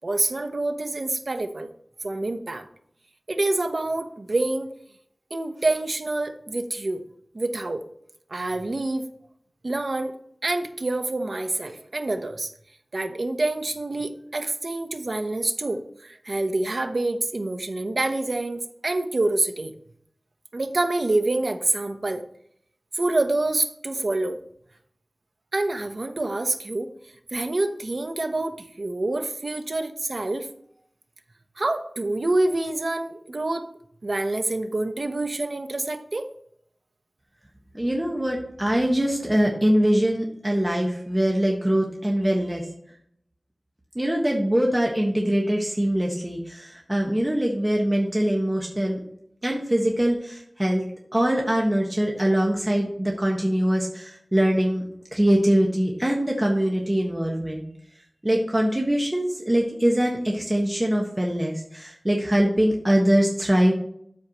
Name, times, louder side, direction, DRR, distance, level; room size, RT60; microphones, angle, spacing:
voice 1, 0.0-1.7 2.0-2.7 3.3-4.7 5.3-7.0 7.3-7.8 8.3-9.0 9.6-10.1 10.4-12.5 12.9-19.7 20.5-22.2 23.0-24.4 25.5-26.9 27.3-30.5 31.6-33.7 34.0-36.3, right 2 dB, 60° right, 7 dB, 0.9 m, -26 dB
voice 2, 37.7-42.7 43.9-49.0 49.4-50.8 51.1-54.8 55.1-57.7 58.2-63.7, right 1 dB, 20° right, -1 dB, 1.4 m, -23 dB
12.5 x 4.7 x 3.0 m, 0.67 s
wide cardioid pair, 60°, 0 cm